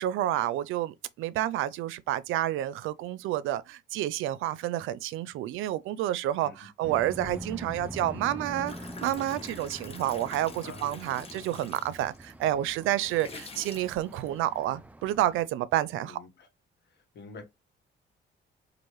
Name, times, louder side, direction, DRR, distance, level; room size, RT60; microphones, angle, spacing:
voice 1, 0.0-8.7 9.0-16.2, right 13 dB, 85° right, 0.4 m, -29 dB
sound 1, 6.8-15.5, right 1 dB, 10° right, 0.3 m, -44 dB
sound 2, 8.7-12.4 12.9-14.6, left 3 dB, 30° left, 0.9 m, -46 dB
voice 2, 10.6-10.9 16.0-16.5 17.1-17.4, left 3 dB, 60° left, 1.2 m, -46 dB
4.5 x 2.5 x 3.1 m
cardioid pair, 90°, 20 cm